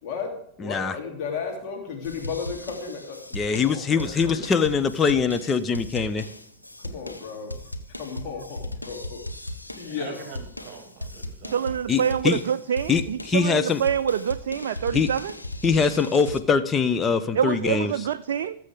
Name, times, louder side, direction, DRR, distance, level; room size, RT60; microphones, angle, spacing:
voice 1, 0.0-3.2 3.5-4.4 6.8-7.5 8.0-9.2 9.8-10.4, left 5 dB, 45° left, 0 dB, 3.1 m, -34 dB
voice 2, 0.6-1.0 3.3-6.2 11.9-12.4 12.9-13.8 14.9-15.1 15.6-18.1, left 5 dB, 20° left, 9 dB, 0.7 m, -23 dB
sound 1, 2.0-16.4, left 1 dB, 90° left, 1.1 m, -37 dB
voice 3, 3.9-4.2 9.8-12.2, right 7 dB, 40° right, 8 dB, 1.4 m, -44 dB
voice 4, 11.5-15.3 17.3-18.6, right 8 dB, 60° right, 12 dB, 0.4 m, -26 dB
19.5 x 7.6 x 3.6 m, 0.69 s
figure-of-eight pair, 90°, 0 cm